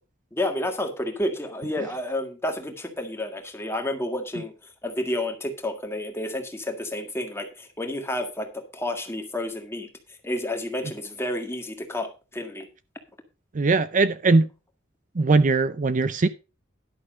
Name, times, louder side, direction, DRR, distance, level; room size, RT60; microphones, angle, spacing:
voice 1, 0.3-9.9 10.2-12.7, left 1 dB, 15° left, 1.9 m, -30 dB
voice 2, 13.5-14.5 15.2-16.3, right 3 dB, 40° right, 0.5 m, -20 dB
11.5 x 6.4 x 5.2 m
head